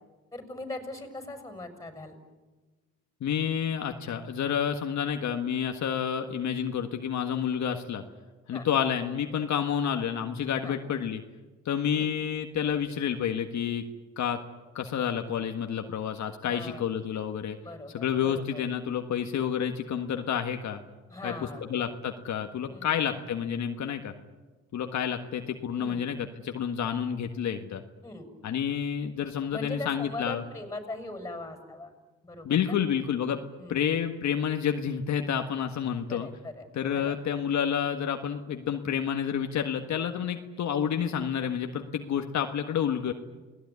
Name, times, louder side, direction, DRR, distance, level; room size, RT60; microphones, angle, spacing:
voice 1, 0.3-2.2 8.5-8.7 10.6-10.8 11.9-12.1 16.4-16.8 17.6-18.6 21.1-21.6 22.7-23.2 25.8-26.0 28.0-28.3 29.5-31.9 32.2-32.8 33.6-33.9 36.1-36.7 36.9-37.2, left 2 dB, 10° left, 7 dB, 6.2 m, -40 dB
voice 2, 3.2-8.0 8.5-11.2 11.6-13.8 14.2-14.4 14.7-17.6 17.9-20.8 21.2-21.3 21.7-24.1 24.7-27.8 28.4-30.4 32.4-33.4 33.7-36.3 36.7-43.1, left 8 dB, 65° left, 5 dB, 1.6 m, -29 dB
29.0 x 18.5 x 9.7 m, 1.3 s
cardioid pair, 90°, 30 cm